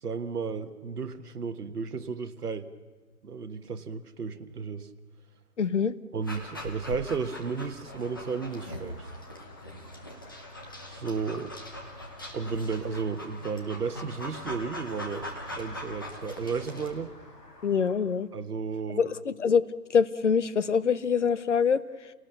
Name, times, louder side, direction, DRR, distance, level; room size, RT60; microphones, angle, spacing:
voice 1, 0.0-2.7 3.2-4.9 6.1-9.1 10.9-11.6 12.3-15.3 15.5-17.1 18.3-19.1, right 5 dB, 65° right, 9 dB, 1.5 m, -33 dB
voice 2, 5.6-5.9 17.6-18.3 18.9-21.8, left 6 dB, 45° left, 15 dB, 0.8 m, -25 dB
Dog, 6.2-17.0, equal, 15° left, 0.9 m, -41 dB
sound 1, 7.8-17.9, left 3 dB, 75° left, 7.1 m, -52 dB
29.0 x 18.0 x 6.9 m, 1.3 s
hypercardioid pair, 165°, 49 cm